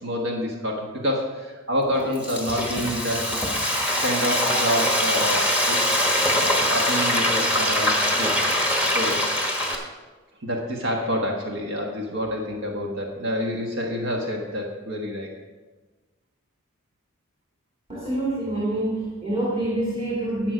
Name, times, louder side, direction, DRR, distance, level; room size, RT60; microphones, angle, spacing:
voice 1, 0.0-3.2 4.0-6.1 6.3-9.2 10.4-15.3, equal, 60° right, 0 dB, 1.3 m, -28 dB
Frying (food), 1.9-9.8, left 1 dB, 5° right, 1.2 m, -23 dB
voice 2, 17.9-20.5, right 1 dB, 25° right, -7 dB, 2.3 m, -26 dB
11.0 x 7.7 x 5.0 m, 1.3 s
head